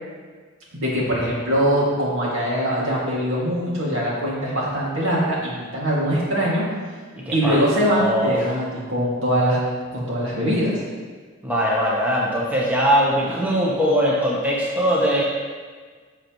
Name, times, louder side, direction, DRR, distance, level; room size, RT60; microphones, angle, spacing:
voice 1, 0.7-6.6 7.3-9.6 9.9-10.8, equal, 75° right, -5 dB, 2.4 m, -22 dB
voice 2, 7.3-7.6 7.9-8.3 11.4-15.2, equal, 10° right, -5 dB, 1.0 m, -21 dB
10.5 x 6.4 x 3.1 m, 1.5 s
head